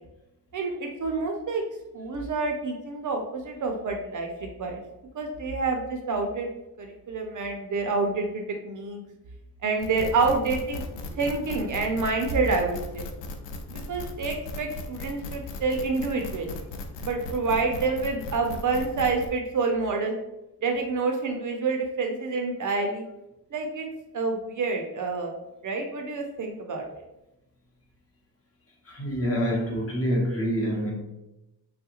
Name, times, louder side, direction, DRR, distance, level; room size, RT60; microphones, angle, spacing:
voice 1, 0.5-1.6 1.9-4.3 4.6-4.8 5.1-6.5 6.8-9.0 9.6-10.8 11.2-13.1 13.7-16.5 17.0-20.2 20.6-23.0 23.5-23.9 24.1-25.3 25.6-26.8, right 4 dB, 50° right, 3 dB, 0.5 m, -28 dB
sound 1, 9.8-19.3, left 2 dB, 90° left, 0.5 m, -37 dB
voice 2, 28.9-30.9, equal, 35° left, -2 dB, 0.9 m, -26 dB
3.4 x 2.3 x 2.8 m, 0.93 s
cardioid pair, 110°, 41 cm